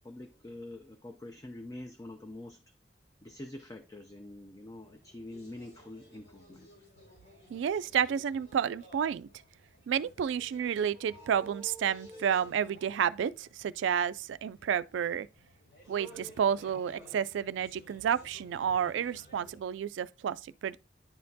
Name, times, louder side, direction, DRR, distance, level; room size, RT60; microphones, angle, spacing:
voice 1, 0.0-2.6 3.2-6.7, left 1 dB, 20° left, 0.5 m, -45 dB
sound 1, 4.7-19.6, left 1 dB, 65° left, 4.0 m, -58 dB
voice 2, 7.5-9.3 9.9-15.3 15.9-20.8, right 8 dB, 85° right, 0.3 m, -30 dB
sound 2, 10.9-13.5 14.7-15.3 15.6-16.5 16.8-17.4 17.7-17.8, right 3 dB, 10° right, 1.9 m, -51 dB
10.0 x 4.3 x 2.7 m
head